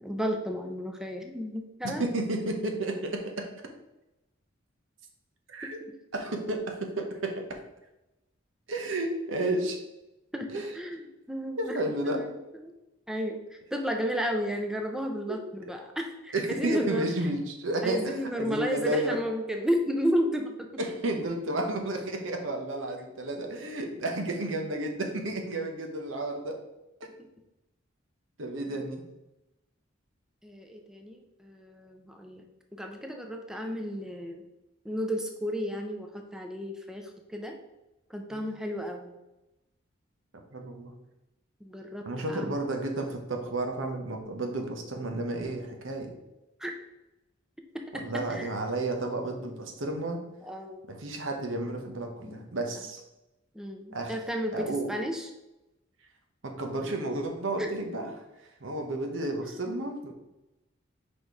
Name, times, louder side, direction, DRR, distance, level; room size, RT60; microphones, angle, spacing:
voice 1, 0.0-2.1 5.6-5.7 10.3-12.3 12.6-12.7 13.1-17.0 17.8-20.7 27.2-27.3 28.6-28.8 30.4-32.5 32.7-34.4 34.8-37.6 38.1-39.1 41.6-42.6 46.6-46.7 47.9-48.5 49.9-50.0 50.4-50.9 52.2-52.5 53.5-55.3 57.6-57.7 59.7-59.8, equal, 5° right, 3 dB, 0.5 m, -33 dB
voice 2, 2.0-3.5 5.5-5.8 6.1-7.6 8.7-9.8 10.5-10.7 11.6-12.3 15.3-15.4 16.3-19.2 20.8-26.6 27.0-27.1 28.4-29.0 38.3-38.4 40.5-40.9 42.0-46.1 47.9-50.2 50.9-53.0 53.9-54.2 54.5-54.9 56.4-58.1 58.4-60.1, right 2 dB, 85° right, 3 dB, 1.0 m, -32 dB
5.0 x 4.4 x 4.7 m, 0.96 s
head